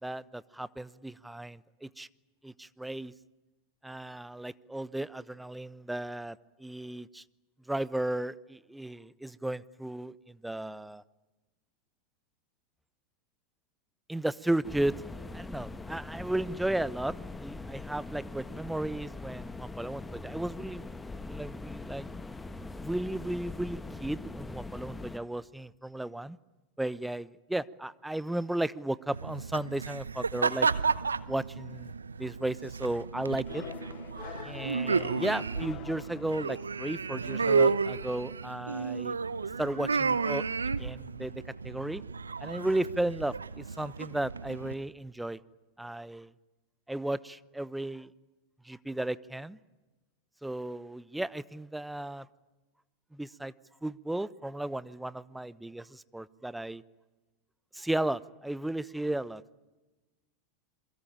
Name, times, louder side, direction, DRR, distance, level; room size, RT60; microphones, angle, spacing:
voice 1, 0.0-2.1 2.4-3.1 3.8-7.2 7.7-11.0 14.1-15.1 15.3-20.9 21.3-22.1 22.8-26.4 26.8-30.7 31.3-31.9 32.2-33.6 34.4-39.1 39.6-40.5 40.8-42.0 42.4-45.4 45.8-46.3 46.9-48.1 48.6-49.6 50.4-52.3 53.1-53.5 53.8-56.8 57.7-59.4, right 1 dB, 5° right, 19 dB, 0.9 m, -34 dB
sound 1, 14.6-25.2, left 3 dB, 10° left, 1.5 m, -42 dB
sound 2, 29.1-44.7, right 5 dB, 85° right, 0.8 m, -32 dB
sound 3, 33.5-37.0, left 13 dB, 40° left, 1.0 m, -45 dB
27.5 x 23.0 x 8.9 m, 1.1 s
figure-of-eight pair, 90°, 0 cm